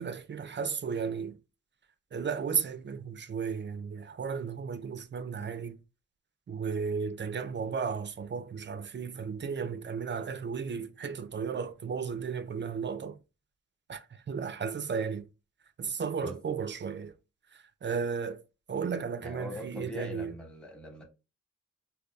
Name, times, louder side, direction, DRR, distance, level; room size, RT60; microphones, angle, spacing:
voice 1, 0.0-1.4 2.1-5.8 6.5-13.2 13.9-15.3 15.8-17.2 17.5-18.4 18.7-20.3, right 6 dB, 40° right, 0.4 m, -34 dB
voice 2, 19.2-21.0, left 1 dB, 5° left, 1.0 m, -41 dB
5.1 x 2.3 x 2.2 m
wide cardioid pair, 90°, 29 cm